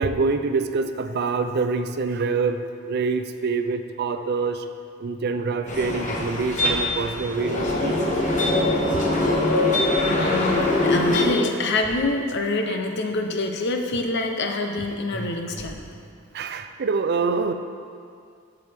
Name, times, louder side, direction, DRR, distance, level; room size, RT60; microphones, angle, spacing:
voice 1, 0.0-4.6 5.0-8.1 16.3-17.5, right 4 dB, 55° right, 9 dB, 0.4 m, -25 dB
sound 1, 5.7-11.3, left 2 dB, 40° left, 1.1 m, -22 dB
voice 2, 10.1-15.8, left 2 dB, 60° left, 4 dB, 0.7 m, -26 dB
sound 2, 11.6-12.0 15.1-16.3, equal, 5° left, 1.1 m, -40 dB
14.0 x 4.8 x 3.5 m, 2.3 s
head